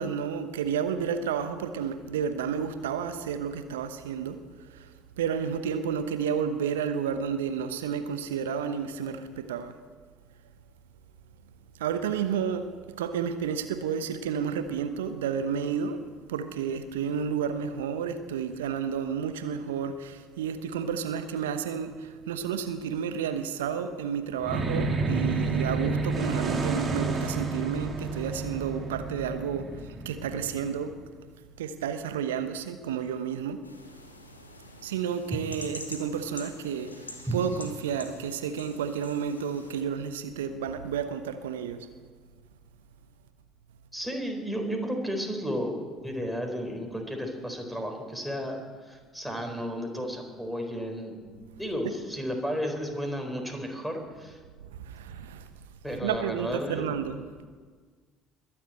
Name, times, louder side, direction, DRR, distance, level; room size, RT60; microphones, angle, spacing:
voice 1, 0.0-4.4 4.7-4.9 5.2-9.7 11.8-12.7 13.0-16.0 16.3-29.7 30.0-30.9 31.6-33.6 34.8-41.9 54.6-55.5 56.0-57.2, right 7 dB, 75° right, 1.0 m, -31 dB
sound 1, 24.4-31.0, right 3 dB, 30° right, 3.0 m, -30 dB
sound 2, 33.6-39.8, left 2 dB, 90° left, 1.4 m, -46 dB
voice 2, 43.9-45.8 46.0-48.6 48.9-51.2 51.6-54.4 55.8-57.1, equal, ahead, 4.1 m, -33 dB
22.0 x 7.3 x 8.7 m
figure-of-eight pair, 60°, 0 cm